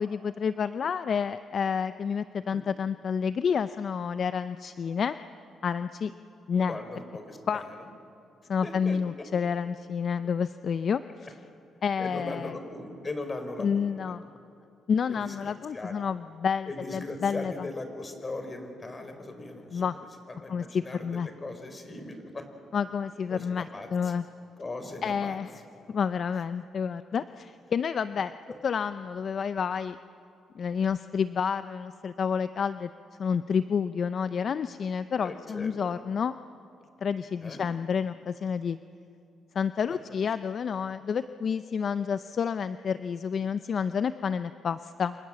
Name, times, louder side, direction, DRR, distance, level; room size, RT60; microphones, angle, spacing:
voice 1, 0.0-5.2 5.6-6.1 6.5-6.8 7.5-7.6 8.5-11.3 11.8-12.6 13.6-14.3 14.9-17.7 19.7-20.0 20.5-21.3 22.7-24.2 25.0-25.5 25.9-28.3 28.6-30.0 30.5-32.9 33.2-36.3 37.0-38.8 39.5-45.2, left 6 dB, 50° left, 12 dB, 0.6 m, -29 dB
voice 2, 6.5-7.8 8.6-9.3 12.0-14.2 15.1-15.9 16.7-22.4 23.3-24.1 24.6-25.4 28.5-28.6 35.2-35.7 37.4-37.6 39.9-40.2, left 2 dB, 25° left, 7 dB, 4.6 m, -39 dB
29.0 x 26.0 x 7.6 m, 2.6 s
cardioid pair, 90°, 0 cm